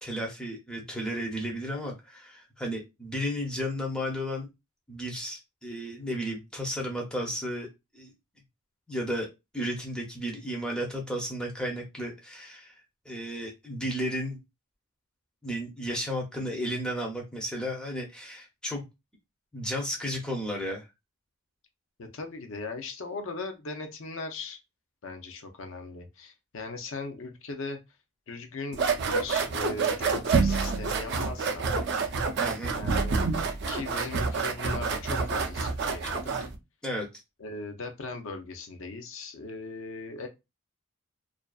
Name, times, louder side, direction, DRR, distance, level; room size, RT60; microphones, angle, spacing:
voice 1, 0.0-4.5 4.9-7.7 7.9-8.1 8.9-9.3 9.5-12.7 13.1-14.4 15.4-18.8 19.5-20.8 32.4-32.8 36.8-37.1, equal, 5° left, 0.5 m, -33 dB
voice 2, 22.0-24.6 25.0-27.8 28.3-31.7 32.7-33.2 33.7-36.5 37.4-40.3, left 3 dB, 60° left, 0.5 m, -39 dB
sound 1, 28.7-36.6, right 4 dB, 50° right, 0.4 m, -28 dB
2.4 x 2.3 x 2.3 m
head